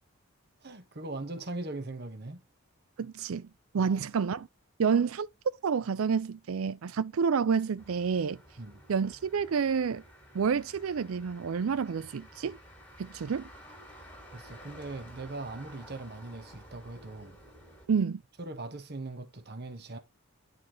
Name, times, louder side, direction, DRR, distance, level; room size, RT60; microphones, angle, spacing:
voice 1, 0.6-2.4 3.7-3.9 8.6-8.8 14.3-17.4 18.4-20.0, right 2 dB, 50° right, 1.2 m, -40 dB
voice 2, 3.0-3.5 3.7-4.5 4.8-5.3 5.6-8.4 8.9-10.0 10.3-12.6 13.0-13.5 17.9-18.2, right 6 dB, 85° right, 0.4 m, -29 dB
Motor vehicle (road), 7.8-17.9, equal, 10° left, 2.1 m, -52 dB
11.0 x 4.1 x 3.0 m
head